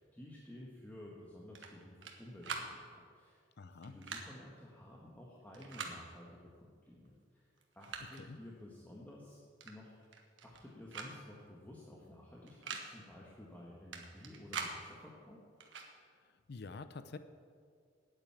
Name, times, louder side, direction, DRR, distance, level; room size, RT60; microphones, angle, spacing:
voice 1, 0.0-3.4 3.8-7.5 7.7-9.9 10.4-15.4, left 1 dB, 10° left, -4 dB, 1.3 m, -53 dB
sound 1, 1.5-2.2 2.4-2.7 3.8-4.3 5.5-6.0 7.0-7.1 7.6-8.2 9.6-9.8 10.0-10.6 10.9-11.1 11.4-11.5 12.5-12.9 13.9-14.8 15.6-15.9, right 5 dB, 80° right, 1.4 m, -43 dB
voice 2, 3.6-4.0 8.2-8.4 16.5-17.2, left 4 dB, 60° left, 11 dB, 0.6 m, -47 dB
9.2 x 8.9 x 8.6 m, 2.1 s
head